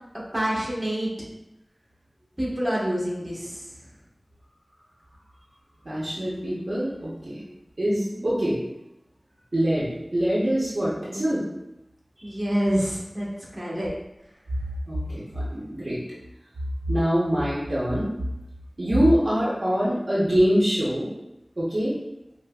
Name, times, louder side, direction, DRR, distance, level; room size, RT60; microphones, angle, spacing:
voice 1, 0.3-1.1 2.4-3.6 8.1-8.2 12.2-13.3 13.5-13.9, equal, 25° right, -6 dB, 1.2 m, -27 dB
voice 2, 5.8-7.5 7.8-8.6 9.5-11.4 12.2-12.3 13.7-13.8 14.9-16.0 16.9-18.1 18.8-21.1 21.6-21.9, equal, 75° right, -7 dB, 0.7 m, -24 dB
5.0 x 2.0 x 2.3 m, 0.90 s
wide cardioid pair, 45°, 0 cm